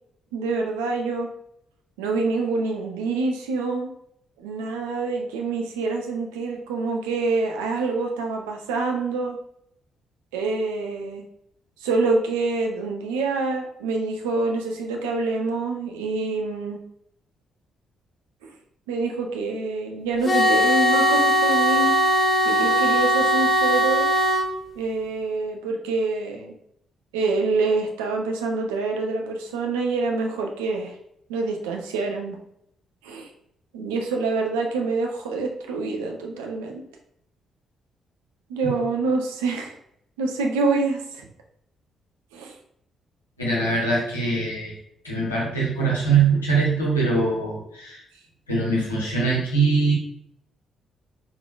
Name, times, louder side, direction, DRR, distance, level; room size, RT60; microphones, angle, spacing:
voice 1, 0.3-1.3 2.0-3.9 4.4-9.4 10.3-11.3 11.8-16.8 18.4-18.5 18.9-21.9 22.4-24.1 24.8-26.6 27.1-30.9 31.3-32.4 33.0-33.3 33.7-36.8 38.5-39.8 40.2-41.3 42.3-42.6, right 3 dB, 70° right, 2 dB, 0.5 m, -26 dB
sound 1, 20.2-24.4, equal, 30° left, 1.1 m, -19 dB
voice 2, 43.4-44.7 45.0-48.0 48.5-49.9, right 4 dB, 85° left, -6 dB, 0.9 m, -22 dB
3.6 x 3.2 x 2.3 m, 0.74 s
figure-of-eight pair, 40°, 0 cm